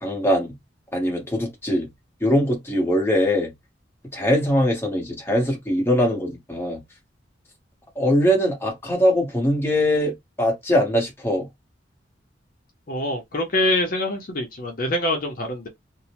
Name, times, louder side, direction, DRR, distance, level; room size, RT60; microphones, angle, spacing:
voice 1, 0.0-0.5 0.9-1.9 2.2-3.5 4.1-6.8 8.0-11.5, equal, 15° left, 1.0 m, -22 dB
voice 2, 12.9-15.7, left 1 dB, 50° left, 0.6 m, -25 dB
2.6 x 2.0 x 2.8 m
head